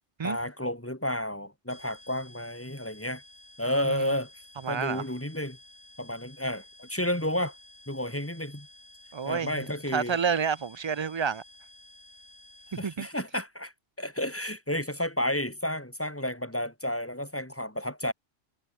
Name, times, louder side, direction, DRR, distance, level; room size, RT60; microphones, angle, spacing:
voice 1, 0.2-3.2 3.6-4.3 4.7-5.6 6.0-7.5 7.9-8.7 9.2-10.2 12.8-13.7 14.0-18.1, left 1 dB, 10° left, 3.4 m, -31 dB
sound 1, 1.7-13.1, left 1 dB, 65° left, 7.3 m, -53 dB
voice 2, 3.8-4.2 4.6-5.0 9.1-11.4 12.7-13.1, right 6 dB, 40° right, 0.4 m, -30 dB
omnidirectional pair, 1.2 m